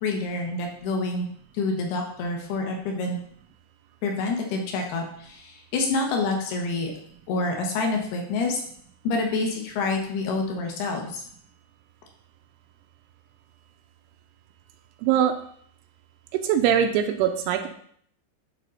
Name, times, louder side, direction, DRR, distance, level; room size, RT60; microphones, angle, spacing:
voice 1, 0.0-1.3 1.5-3.2 4.0-6.9 7.3-8.6 9.0-11.2, left 3 dB, 65° left, 1 dB, 2.7 m, -27 dB
voice 2, 15.0-15.3 16.4-17.7, right 9 dB, 85° right, 6 dB, 3.0 m, -22 dB
11.0 x 4.1 x 5.6 m, 0.63 s
omnidirectional pair, 5.9 m